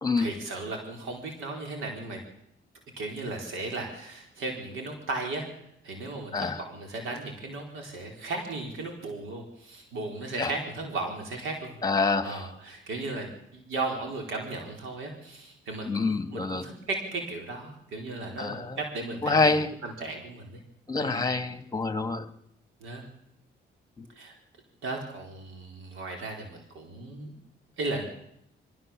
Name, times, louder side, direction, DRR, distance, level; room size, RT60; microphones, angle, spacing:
voice 1, 0.2-2.2 3.0-5.4 5.8-11.7 12.2-19.5 19.8-20.6 21.0-21.3 22.8-23.0 24.2-24.3 24.8-27.3 27.8-28.1, right 2 dB, 85° right, 2 dB, 4.6 m, -36 dB
voice 2, 11.8-12.4 15.9-16.7 18.4-18.8 19.2-19.7 20.9-22.2, left 3 dB, 20° left, 10 dB, 1.9 m, -26 dB
24.5 x 15.5 x 7.5 m, 0.75 s
cardioid pair, 90°, 20 cm